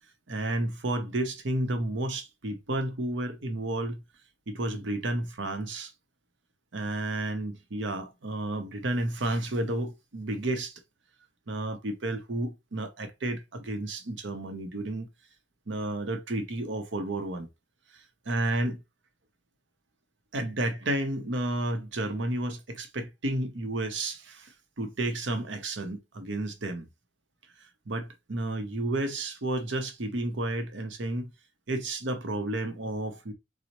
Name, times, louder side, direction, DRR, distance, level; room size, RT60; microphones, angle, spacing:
voice 1, 0.3-4.0 4.5-5.9 6.7-10.8 11.5-15.1 15.7-17.5 17.9-18.8 20.3-26.9 27.9-31.3 31.7-33.3, right 1 dB, 75° right, 0.7 m, -31 dB
4.0 x 2.0 x 2.9 m
head